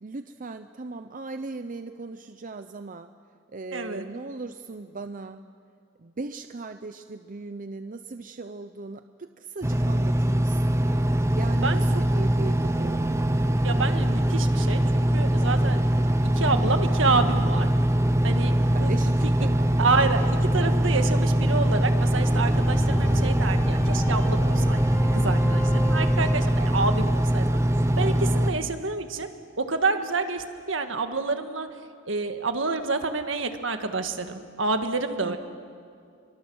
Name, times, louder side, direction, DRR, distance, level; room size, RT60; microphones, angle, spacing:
voice 1, 0.0-3.1 3.5-5.4 6.0-10.8 11.3-13.1 18.7-19.7 27.9-28.8 35.2-35.4, right 3 dB, 45° right, 9 dB, 0.7 m, -38 dB
voice 2, 3.7-4.0 11.6-11.8 13.6-16.0 16.3-17.7 18.2-18.9 19.2-19.3 19.8-27.5 28.0-29.3 29.6-31.7 32.1-35.4, right 3 dB, 75° right, 7 dB, 1.7 m, -28 dB
Engine, 9.6-28.5, right 1 dB, 15° right, 0.8 m, -22 dB
sound 1, 22.0-27.2, equal, 10° left, 5.9 m, -31 dB
29.5 x 24.0 x 6.3 m, 2.3 s
head